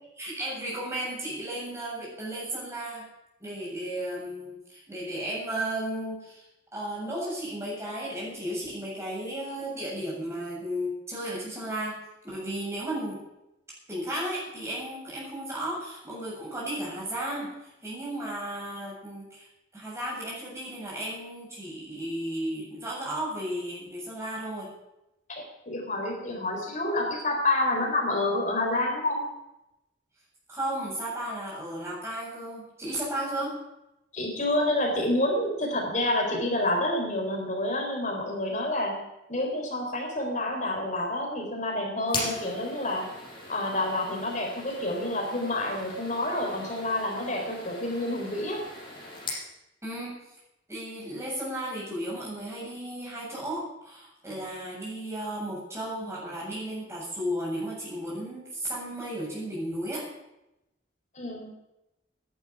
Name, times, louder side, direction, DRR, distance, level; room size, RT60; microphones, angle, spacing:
voice 1, 0.2-3.1 3.4-6.4 6.7-12.0 12.2-13.2 13.9-17.5 17.8-19.5 19.7-24.7 30.5-33.6 49.8-50.2 50.7-60.1, right 1 dB, 15° right, -5 dB, 7.4 m, -34 dB
voice 2, 25.3-29.2 34.1-39.0 39.3-43.1 43.5-48.7 61.1-61.5, left 1 dB, 40° left, 1 dB, 4.0 m, -28 dB
sound 1, 42.0-49.5, left 2 dB, 25° left, 5.4 m, -39 dB
11.5 x 10.5 x 9.5 m, 0.90 s
head